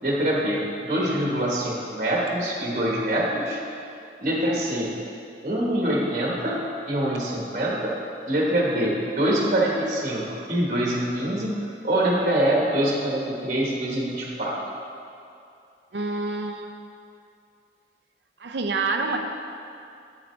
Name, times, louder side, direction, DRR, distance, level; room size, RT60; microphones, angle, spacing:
voice 1, 0.0-3.6 4.2-4.9 5.4-6.6 6.9-7.9 8.3-11.5 11.8-14.6, right 1 dB, 45° right, -4 dB, 1.4 m, -24 dB
voice 2, 15.9-16.7 18.4-19.2, right 3 dB, 80° right, 4 dB, 0.6 m, -27 dB
8.8 x 8.2 x 3.2 m, 2.5 s
head